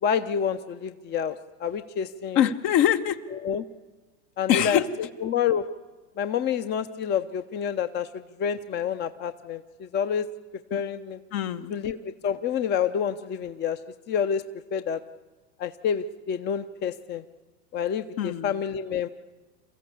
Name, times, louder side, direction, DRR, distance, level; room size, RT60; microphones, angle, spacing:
voice 1, 0.0-2.4 3.4-3.6 4.4-4.8 5.2-5.7 6.2-10.3 10.7-11.2 11.7-13.8 14.1-14.4 14.7-15.0 15.6-17.2 17.7-19.1, left 8 dB, 25° left, 10 dB, 0.8 m, -28 dB
voice 2, 2.3-3.2 4.5-4.9 10.7-10.8 11.3-11.8 18.2-18.6, left 10 dB, 50° left, 9 dB, 1.2 m, -23 dB
28.0 x 14.5 x 8.5 m, 1.3 s
hypercardioid pair, 90°, 38 cm